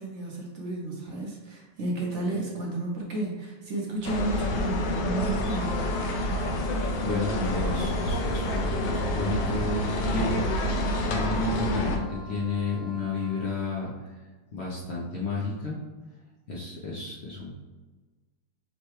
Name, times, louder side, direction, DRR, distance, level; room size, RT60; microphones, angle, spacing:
voice 1, 0.0-6.2, right 2 dB, 55° right, -2 dB, 0.8 m, -32 dB
sound 1, 4.0-12.0, left 1 dB, 75° left, 1.1 m, -28 dB
Wind instrument woodwind instrument, 5.5-13.6, left 1 dB, 10° left, 0.8 m, -45 dB
voice 2, 7.0-10.5 11.1-14.2 14.5-15.8 16.5-17.5, left 2 dB, 60° left, -4 dB, 0.7 m, -31 dB
5.5 x 2.2 x 3.1 m, 1.3 s
omnidirectional pair, 1.9 m